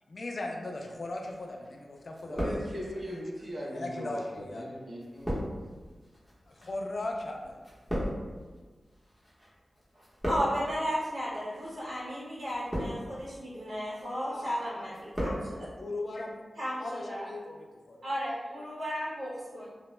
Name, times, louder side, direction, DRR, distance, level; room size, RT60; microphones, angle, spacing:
voice 1, 0.1-2.6 3.7-4.7 6.5-7.6 14.2-14.5 14.7-16.4 16.8-18.0, left 2 dB, 60° left, 1 dB, 0.3 m, -38 dB
sound 1, 1.2-1.8 2.1-3.1 3.8-9.5 9.8-10.8 11.5-11.8 12.4-13.2 13.7-14.1 14.5-15.5 15.7-15.8, equal, ahead, 0.8 m, -36 dB
voice 2, 2.2-5.5, equal, 40° right, -6 dB, 0.7 m, -39 dB
voice 3, 10.3-15.7 16.6-17.3 18.0-19.7, equal, 75° right, -10 dB, 0.8 m, -34 dB
2.1 x 2.0 x 3.1 m, 1.4 s
wide cardioid pair, 80°, 0 cm